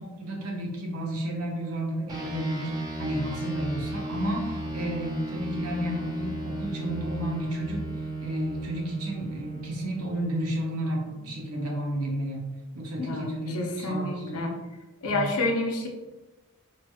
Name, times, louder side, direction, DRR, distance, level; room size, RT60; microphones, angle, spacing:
voice 1, 0.2-7.9 8.2-12.5 12.7-14.4 15.0-15.3, equal, 70° right, -1 dB, 0.8 m, -32 dB
sound 1, 2.1-11.8, right 2 dB, 15° right, 0.5 m, -36 dB
voice 2, 13.0-14.5 15.0-15.9, left 2 dB, 75° left, 1 dB, 0.6 m, -29 dB
3.0 x 2.9 x 2.3 m, 1.1 s
head